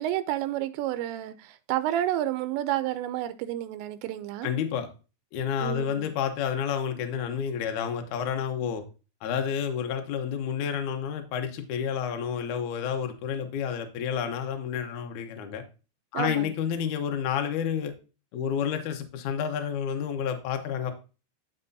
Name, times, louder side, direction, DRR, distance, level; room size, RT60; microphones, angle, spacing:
voice 1, 0.0-4.5 5.6-6.1 16.1-16.5, right 13 dB, 90° right, 2.8 m, -30 dB
voice 2, 4.4-4.9 5.3-8.8 9.2-15.6 16.1-17.9 18.3-20.9, left 8 dB, 90° left, 1.7 m, -30 dB
9.6 x 6.7 x 2.7 m
omnidirectional pair, 5.0 m